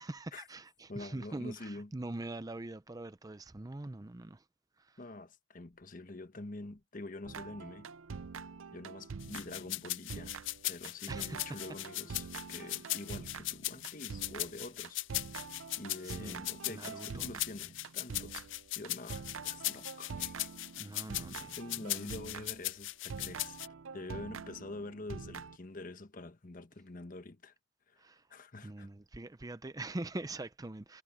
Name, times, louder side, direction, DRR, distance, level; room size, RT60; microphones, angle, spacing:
voice 1, 0.0-4.4 4.8-5.0 11.1-11.4 12.5-12.8 16.0-17.3 20.8-22.1 28.0-28.2 28.6-31.0, right 2 dB, 20° right, 0.5 m, -43 dB
voice 2, 0.9-1.9 5.0-7.9 8.7-10.4 10.6-15.0 15.8-18.5 18.7-20.5 21.6-27.5 27.9-28.0 28.3-28.9, left 2 dB, 45° left, 1.1 m, -46 dB
sound 1, 7.2-22.7 23.1-25.6, right 5 dB, 90° right, 0.6 m, -46 dB
sound 2, 9.2-23.7, left 17 dB, 70° left, 0.5 m, -38 dB
head